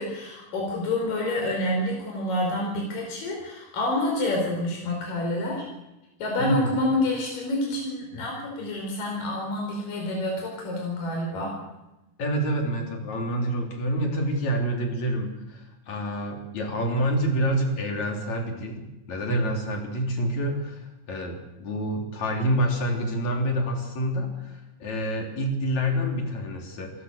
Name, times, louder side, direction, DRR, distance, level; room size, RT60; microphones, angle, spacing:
voice 1, 0.0-5.6 6.2-11.5, left 1 dB, 75° left, -1 dB, 6.5 m, -28 dB
voice 2, 6.4-6.8 12.2-20.8 21.1-26.9, right 1 dB, 55° left, 2 dB, 4.8 m, -27 dB
28.0 x 16.5 x 6.6 m, 0.96 s
omnidirectional pair, 3.9 m